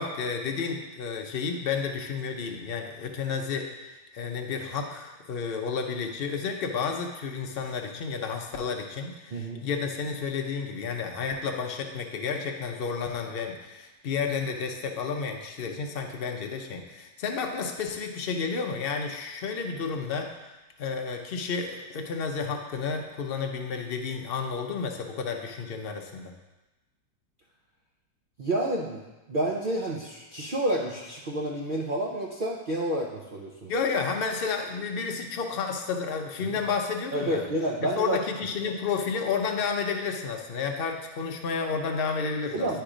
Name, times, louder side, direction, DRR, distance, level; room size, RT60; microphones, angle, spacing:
voice 1, 0.0-3.7 4.1-20.4 20.8-26.3 33.7-37.5 38.0-42.8, left 5 dB, 75° left, 3 dB, 0.5 m, -31 dB
voice 2, 9.3-9.6 28.4-29.0 29.3-33.7 36.4-36.6 37.1-38.2 42.5-42.8, right 1 dB, 70° right, -3 dB, 0.5 m, -29 dB
10.0 x 3.4 x 4.9 m, 1.1 s
omnidirectional pair, 1.9 m